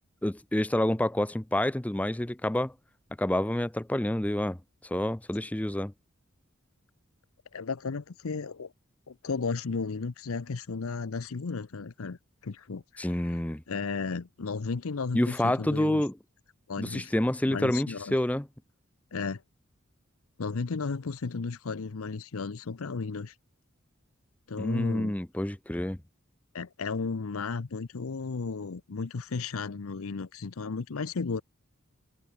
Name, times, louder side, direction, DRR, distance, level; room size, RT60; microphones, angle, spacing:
voice 1, 0.2-2.7 3.2-4.6 4.8-5.9 13.0-13.6 15.1-16.1 16.8-18.5 24.6-26.0, left 1 dB, 5° left, 0.5 m, -28 dB
voice 2, 7.5-8.7 9.1-12.2 12.4-13.4 13.7-16.0 16.7-17.1 17.5-18.2 19.1-19.4 20.4-23.3 24.5-25.2 26.5-31.4, left 4 dB, 85° left, 0.7 m, -34 dB
head